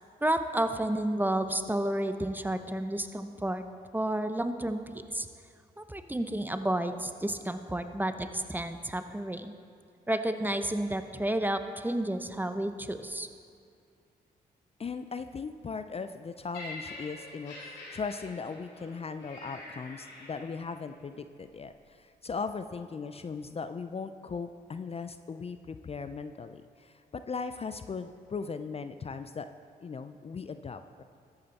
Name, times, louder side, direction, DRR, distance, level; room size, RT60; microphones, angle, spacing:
voice 1, 0.2-3.6 3.9-5.3 5.8-9.5 10.1-13.3, right 1 dB, 10° right, 9 dB, 0.7 m, -31 dB
voice 2, 14.8-29.5 29.8-31.0, left 5 dB, 35° left, 10 dB, 0.5 m, -38 dB
Laughter, 16.5-20.8 21.6-21.8, left 2 dB, 90° left, 2.7 m, -46 dB
13.0 x 8.8 x 4.2 m, 2.3 s
supercardioid pair, 55°, 17 cm